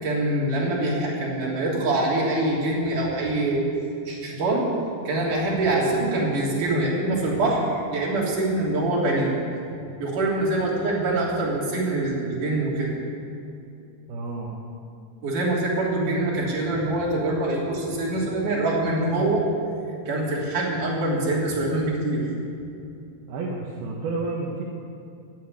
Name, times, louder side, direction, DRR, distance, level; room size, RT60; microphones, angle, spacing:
voice 1, 0.0-3.6 4.1-4.6 5.0-9.4 10.0-13.0 15.2-19.4 20.1-22.3, right 2 dB, 55° right, -4 dB, 4.6 m, -24 dB
voice 2, 14.1-14.6 23.3-24.6, right 3 dB, 75° right, -2 dB, 3.3 m, -30 dB
15.0 x 9.4 x 9.4 m, 2.6 s
omnidirectional pair, 4.5 m